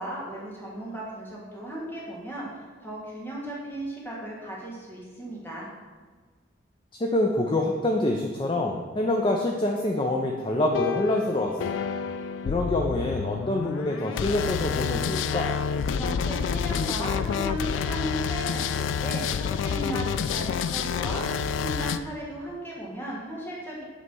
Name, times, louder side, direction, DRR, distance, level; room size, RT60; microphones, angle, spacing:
voice 1, 0.0-5.7 15.9-21.3 21.6-23.8, right 1 dB, 10° left, -6 dB, 1.7 m, -36 dB
voice 2, 7.0-11.8 12.4-15.5, left 1 dB, 25° left, 1 dB, 0.4 m, -26 dB
sound 1, 10.5-22.0, left 6 dB, 90° left, 0.3 m, -29 dB
8.0 x 3.3 x 5.3 m, 1.4 s
head